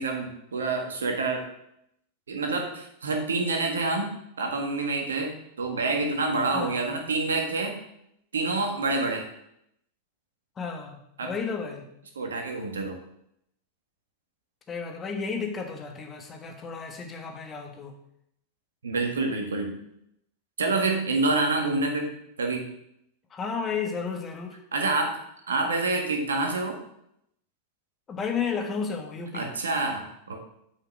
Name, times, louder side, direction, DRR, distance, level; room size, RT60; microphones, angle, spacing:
voice 1, 0.0-1.5 2.3-7.8 8.3-9.2 11.2-11.3 12.1-13.0 18.8-19.8 20.6-22.7 24.7-25.2 25.5-26.8 29.3-30.4, right 3 dB, 70° right, 3 dB, 1.7 m, -27 dB
voice 2, 6.5-6.9 10.6-11.8 14.7-17.9 23.3-24.6 28.1-29.5, left 5 dB, 20° left, 3 dB, 1.6 m, -32 dB
8.3 x 5.6 x 6.1 m, 0.76 s
figure-of-eight pair, 90°, 0 cm